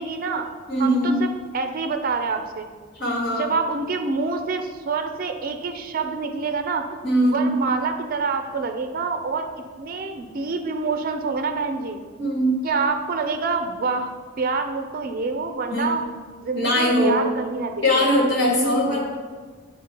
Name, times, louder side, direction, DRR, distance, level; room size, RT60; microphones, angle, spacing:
voice 1, 0.0-0.5 0.8-2.7 3.4-6.8 7.2-9.5 9.8-12.0 12.6-16.0 16.4-18.1 18.4-19.0, right 4 dB, 45° right, 6 dB, 0.5 m, -27 dB
voice 2, 0.7-1.2 3.0-3.5 7.0-7.4 12.2-12.6 15.7-15.9 16.5-17.2 17.8-19.0, equal, 60° left, -3 dB, 1.8 m, -21 dB
10.0 x 4.1 x 2.9 m, 1.5 s
head